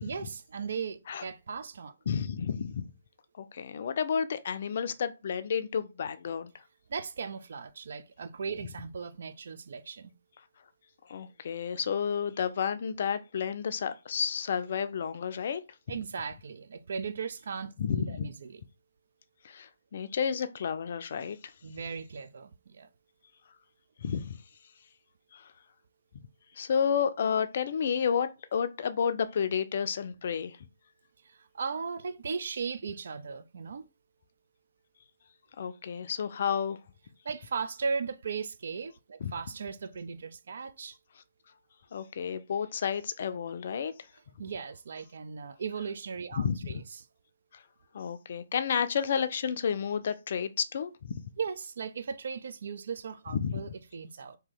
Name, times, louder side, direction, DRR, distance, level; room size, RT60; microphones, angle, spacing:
voice 1, 0.0-1.9 6.9-10.1 15.9-18.6 21.6-22.9 31.2-33.9 37.2-41.0 44.4-46.8 51.4-54.4, right 5 dB, 60° right, 0.5 m, -37 dB
voice 2, 2.1-2.9 3.4-6.5 11.1-15.6 17.8-18.3 19.4-21.4 24.0-24.4 25.3-25.5 26.6-30.6 35.6-36.8 39.2-39.3 41.9-43.9 46.4-46.8 47.5-47.6 47.9-51.1 53.4-53.6, left 7 dB, 55° left, 0.4 m, -31 dB
2.9 x 2.7 x 3.8 m
figure-of-eight pair, 135°, 0 cm